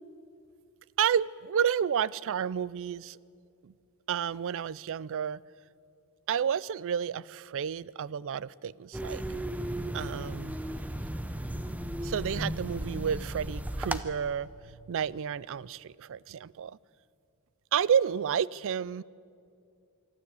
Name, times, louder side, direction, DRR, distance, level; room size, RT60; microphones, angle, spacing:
voice 1, 1.0-3.2 3.6-3.7 4.1-5.4 6.3-9.2 9.9-10.6 12.0-16.8 17.7-19.0, right 8 dB, 60° right, 0.4 m, -30 dB
sound 1, 8.9-14.0, right 1 dB, 5° right, 0.6 m, -35 dB
24.0 x 13.0 x 8.3 m
head